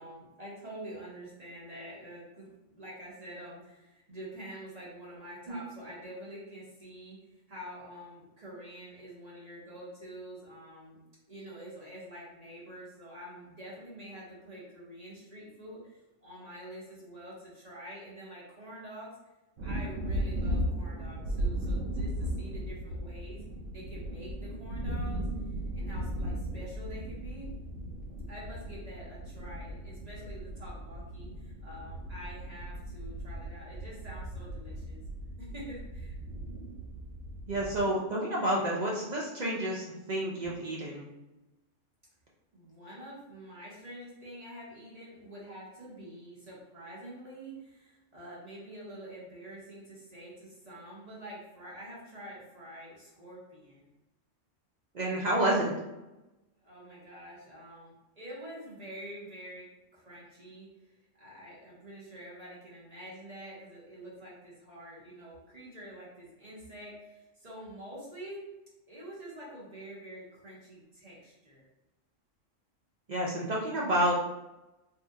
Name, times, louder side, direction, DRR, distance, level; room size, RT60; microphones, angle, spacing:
voice 1, 0.0-7.2 7.5-11.0 11.3-19.2 19.6-23.4 23.7-25.2 25.7-27.5 28.3-35.0 35.4-36.2 42.5-53.9 56.6-68.4 68.9-71.7, right 1 dB, 35° right, -6 dB, 0.9 m, -47 dB
sound 1, 19.6-37.8, equal, 75° right, 0.9 m, -37 dB
voice 2, 37.5-41.1 54.9-55.7 73.1-74.1, right 1 dB, 60° right, -3 dB, 0.4 m, -29 dB
2.7 x 2.1 x 3.5 m, 0.99 s
omnidirectional pair, 1.3 m